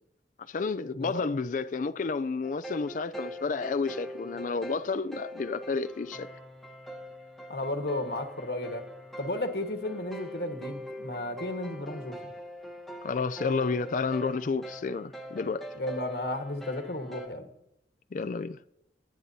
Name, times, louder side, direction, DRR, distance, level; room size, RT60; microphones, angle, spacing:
voice 1, 0.5-6.3 13.0-15.6 18.1-18.6, left 4 dB, 45° left, 0.4 m, -31 dB
sound 1, 2.4-17.3, equal, ahead, 1.1 m, -43 dB
voice 2, 7.5-8.8 9.2-12.3 15.8-17.5, left 1 dB, 65° left, 1.4 m, -34 dB
21.0 x 9.4 x 2.7 m
head